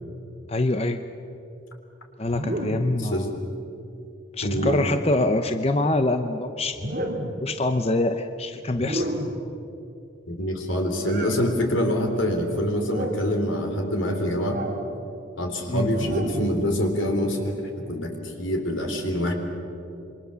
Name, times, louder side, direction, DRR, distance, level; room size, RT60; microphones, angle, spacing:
voice 1, 0.5-1.0 2.2-3.3 4.4-7.0 7.4-9.1 15.7-15.9, left 2 dB, 30° left, 8 dB, 0.8 m, -25 dB
sound 1, 2.3-3.0 4.4-5.2 6.7-7.5 8.7-9.5 11.0-11.4 12.8-13.3 14.4-14.8 15.9-16.6, right 1 dB, 45° right, 2.7 m, -31 dB
voice 2, 3.0-3.3 4.4-4.7 10.3-14.6 15.4-19.3, equal, 85° left, 4 dB, 3.6 m, -25 dB
27.0 x 23.0 x 7.0 m, 2.8 s
head